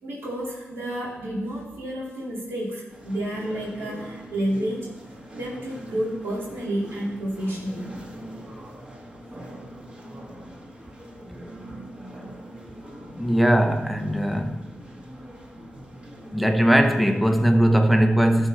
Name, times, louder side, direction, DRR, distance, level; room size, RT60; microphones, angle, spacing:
voice 1, 0.0-4.9 5.3-7.9, right 1 dB, 80° right, 2.6 m, -30 dB
sound 1, 2.9-17.5, equal, 25° right, 1.6 m, -43 dB
voice 2, 13.1-14.6 16.3-18.5, equal, ahead, 0.9 m, -20 dB
12.5 x 4.5 x 5.8 m
cardioid pair, 75°, 4 cm